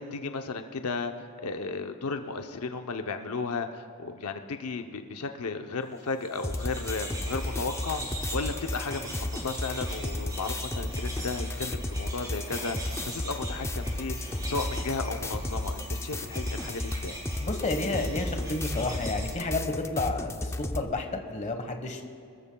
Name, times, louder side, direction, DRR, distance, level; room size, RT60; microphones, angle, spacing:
voice 1, 0.0-17.2, left 4 dB, 85° left, 6 dB, 0.7 m, -34 dB
sound 1, 6.1-19.3, right 1 dB, 20° right, 3.6 m, -41 dB
sound 2, 6.4-20.9, left 1 dB, 10° left, 0.5 m, -34 dB
voice 2, 17.4-22.0, left 2 dB, 35° left, 5 dB, 1.2 m, -31 dB
26.0 x 14.0 x 2.3 m, 2.6 s
head